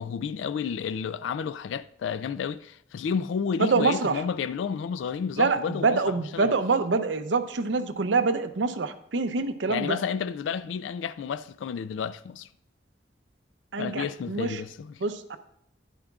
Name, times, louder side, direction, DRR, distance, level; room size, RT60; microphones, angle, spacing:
voice 1, 0.0-6.5 9.7-12.5 13.8-14.9, left 6 dB, 90° left, 0.3 m, -31 dB
voice 2, 3.6-4.2 5.4-10.0 13.7-14.6 15.0-15.4, right 4 dB, 80° right, 0.6 m, -26 dB
12.5 x 10.0 x 2.4 m
head